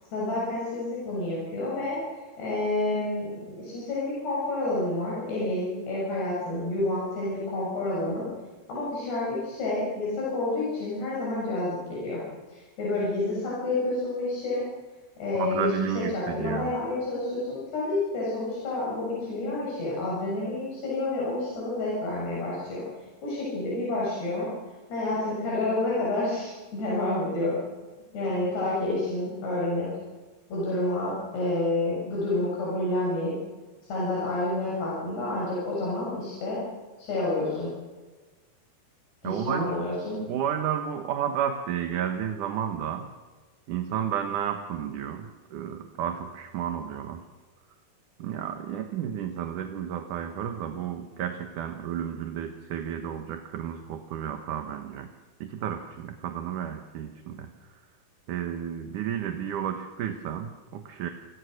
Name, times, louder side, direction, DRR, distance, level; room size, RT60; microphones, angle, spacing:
voice 1, 0.1-2.0 2.4-8.3 8.7-12.2 12.5-14.7 15.2-22.9 23.2-24.5 24.9-27.6 28.1-29.9 30.5-33.3 33.9-36.6 37.0-37.7 39.2-40.2, left 2 dB, 85° left, -6 dB, 9.3 m, -29 dB
voice 2, 15.3-16.7 39.2-39.7 40.3-43.1 43.7-47.3 48.2-55.1 55.4-57.5 58.3-61.1, right 9 dB, 60° right, 6 dB, 2.4 m, -32 dB
29.0 x 25.0 x 6.6 m, 1.3 s
omnidirectional pair, 4.6 m